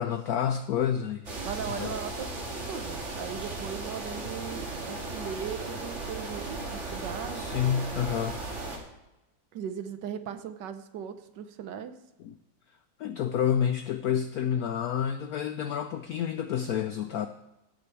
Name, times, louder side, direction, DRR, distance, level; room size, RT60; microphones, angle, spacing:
voice 1, 0.0-1.3 1.7-2.0 7.3-8.4 12.2-12.3 13.0-17.3, left 9 dB, 75° left, 10 dB, 0.8 m, -29 dB
sound 1, 1.3-8.8, right 2 dB, 35° right, 2.3 m, -36 dB
voice 2, 1.4-2.3 2.7-7.5 9.5-11.9, right 8 dB, 70° right, 9 dB, 1.3 m, -38 dB
16.5 x 6.7 x 4.5 m, 0.96 s
omnidirectional pair, 2.1 m